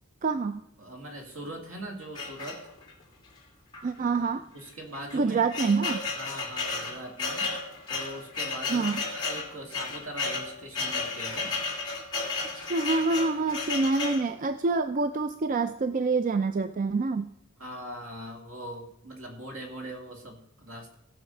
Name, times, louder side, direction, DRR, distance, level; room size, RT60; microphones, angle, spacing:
voice 1, 0.2-0.6 3.8-4.4 5.1-6.0 8.7-9.0 12.5-17.3, right 3 dB, 40° right, 10 dB, 0.4 m, -26 dB
voice 2, 0.8-2.6 4.5-5.4 6.2-7.6 7.9-11.6 17.6-21.0, right 1 dB, 70° right, 2 dB, 2.4 m, -41 dB
sound 1, 2.2-3.0 3.7-3.9 4.2-4.3 4.9-14.3, left 4 dB, 20° left, 2.8 m, -33 dB
17.0 x 5.9 x 5.5 m, 0.80 s
head